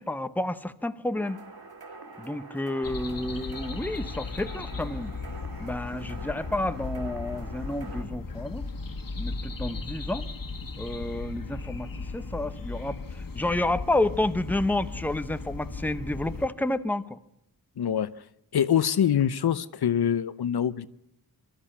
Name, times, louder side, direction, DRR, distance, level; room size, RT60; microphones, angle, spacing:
voice 1, 0.0-1.4 2.2-5.1 5.6-8.6 9.2-10.3 10.8-17.2, left 1 dB, 5° left, 0.9 m, -30 dB
sound 1, 1.2-8.0, right 3 dB, 75° right, 2.8 m, -45 dB
sound 2, 2.8-16.5, left 4 dB, 60° left, 1.7 m, -36 dB
voice 2, 17.8-18.1 18.5-20.9, left 9 dB, 80° left, 0.8 m, -24 dB
23.5 x 13.0 x 10.0 m
wide cardioid pair, 125°, 38 cm